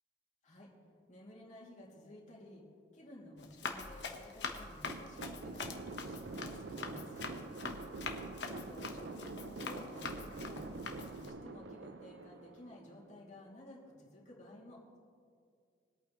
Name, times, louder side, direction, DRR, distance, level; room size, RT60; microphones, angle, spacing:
voice 1, 1.1-2.6 2.9-5.7 6.0-7.2 8.5-10.6 10.9-15.0, left 1 dB, 45° left, -4 dB, 2.7 m, -54 dB
Run, 3.4-11.3, left 4 dB, 75° left, 1.2 m, -44 dB
sound 1, 4.9-13.1, right 3 dB, 75° right, 0.6 m, -46 dB
22.5 x 8.7 x 3.1 m, 2.2 s
head